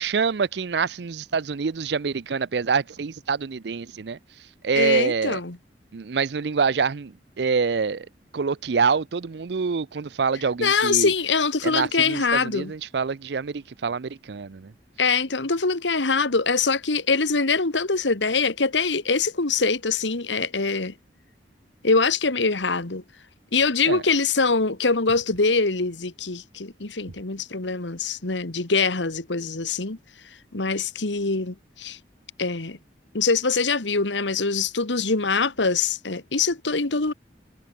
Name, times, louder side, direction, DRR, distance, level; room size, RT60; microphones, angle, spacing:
voice 1, 0.0-4.2 4.6-5.4 5.9-8.1 8.3-11.1 11.6-14.7 23.8-24.0, right 5 dB, 70° right, 0.5 m, -26 dB
voice 2, 4.8-5.6 10.6-12.7 15.0-20.9 21.8-23.0 23.5-30.0 30.5-32.0 32.4-32.8 33.1-37.1, left 4 dB, 90° left, 1.8 m, -23 dB
head